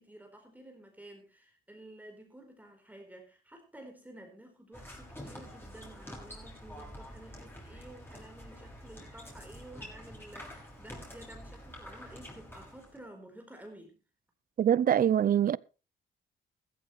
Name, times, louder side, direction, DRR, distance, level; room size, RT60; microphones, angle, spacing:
voice 1, 0.0-14.0, right 1 dB, 10° right, 4.3 m, -52 dB
Skatepark & Basketball Area Soundscape, 4.7-13.0, equal, 10° left, 6.5 m, -47 dB
voice 2, 14.6-15.6, right 9 dB, 45° right, 0.6 m, -24 dB
15.0 x 13.5 x 3.3 m
cardioid pair, 90°, 20 cm